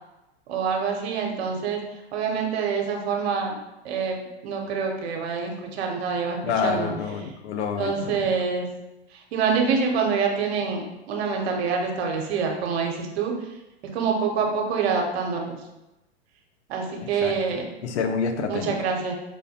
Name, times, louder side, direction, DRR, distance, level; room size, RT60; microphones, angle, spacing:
voice 1, 0.5-1.8 2.1-3.6 3.8-6.9 7.8-8.7 9.3-13.3 13.9-15.6 16.7-17.7 18.5-19.1, right 5 dB, 65° right, 1 dB, 0.9 m, -26 dB
voice 2, 6.4-8.3 17.0-18.8, left 5 dB, 75° left, 7 dB, 0.6 m, -28 dB
4.8 x 2.1 x 2.8 m, 0.98 s
hypercardioid pair, 105°, 34 cm